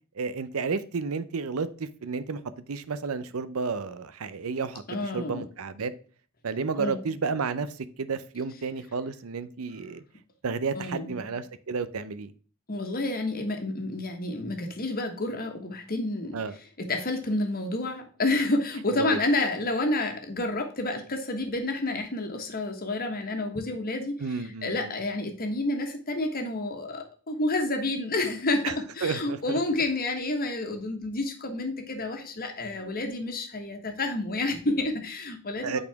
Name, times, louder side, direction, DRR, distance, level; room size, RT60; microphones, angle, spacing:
voice 1, 0.2-2.4 2.7-5.9 6.4-7.7 8.0-10.0 10.4-12.3 16.3-16.5 18.9-19.2 24.2-24.9 28.6-28.7 29.0-29.6 35.6-35.8, right 5 dB, 85° right, 0.6 m, -31 dB
voice 2, 4.9-5.4 6.8-7.0 10.7-11.2 12.7-16.4 16.8-35.8, left 2 dB, 45° left, 1.4 m, -29 dB
8.7 x 4.2 x 3.4 m
head